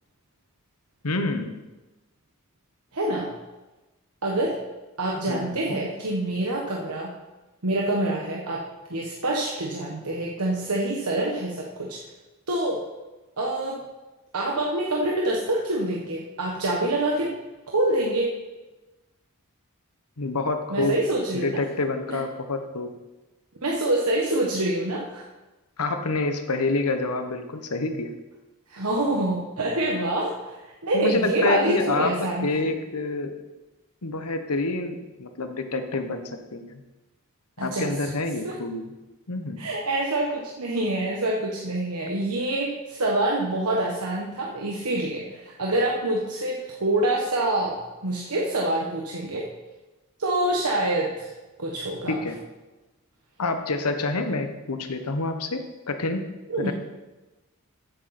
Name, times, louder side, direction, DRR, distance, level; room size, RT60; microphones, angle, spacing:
voice 1, 1.0-1.6 5.3-5.8 20.2-21.0 21.3-22.9 25.8-28.1 30.9-33.3 34.0-36.8 37.6-38.9 39.3-39.6 52.1-52.4 53.4-55.6 55.9-56.2 56.6-56.7, left 3 dB, 90° left, 7 dB, 1.2 m, -27 dB
voice 2, 2.9-3.3 4.2-4.6 5.0-7.1 7.6-8.6 8.9-12.0 12.5-12.8 13.4-13.8 14.3-17.3 17.7-18.3 20.7-21.6 22.1-22.2 23.6-25.2 28.7-32.7 37.6-38.1 38.4-38.5 39.6-47.8 48.0-49.5 50.2-51.3 51.6-52.2 56.5-56.7, right 1 dB, 85° right, -2 dB, 1.4 m, -26 dB
14.0 x 8.1 x 4.3 m, 1.1 s
head